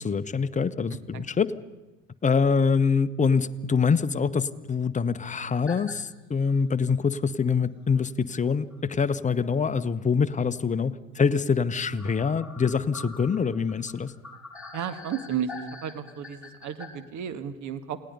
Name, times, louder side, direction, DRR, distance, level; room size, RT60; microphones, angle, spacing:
voice 1, 0.0-1.5 2.2-14.1, left 5 dB, 20° left, 10 dB, 1.0 m, -25 dB
sound 1, 5.7-6.0 6.5-6.6 7.9-8.0 8.7-8.8 9.1-9.2 12.0-16.9, left 3 dB, 5° right, 6.7 m, -44 dB
voice 2, 14.7-18.0, right 8 dB, 45° right, 10 dB, 2.0 m, -33 dB
28.5 x 18.5 x 5.5 m, 1.1 s
figure-of-eight pair, 70°, 41 cm